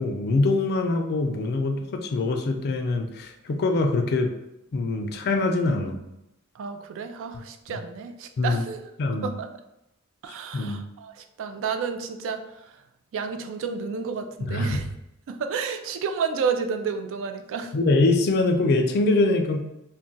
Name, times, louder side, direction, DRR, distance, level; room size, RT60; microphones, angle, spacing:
voice 1, 0.0-4.3 4.7-6.0 7.7-7.8 8.4-8.6 9.0-9.3 10.5-10.8 14.5-14.8 17.7-19.6, left 2 dB, 45° left, 5 dB, 0.4 m, -23 dB
voice 2, 6.5-8.9 9.2-9.5 10.2-12.8 13.1-14.8 15.3-17.7, right 5 dB, 60° right, 7 dB, 0.3 m, -31 dB
2.3 x 2.2 x 3.8 m, 0.88 s
head